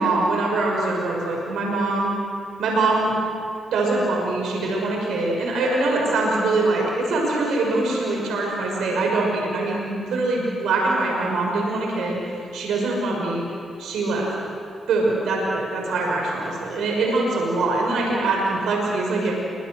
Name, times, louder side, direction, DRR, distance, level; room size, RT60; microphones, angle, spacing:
voice 1, 0.0-2.1 2.6-3.2 3.7-12.2 12.5-13.4 13.8-14.3 14.9-19.3, right 2 dB, 85° right, -1 dB, 6.1 m, -23 dB
28.5 x 25.0 x 6.5 m, 2.5 s
cardioid pair, 65°, 0 cm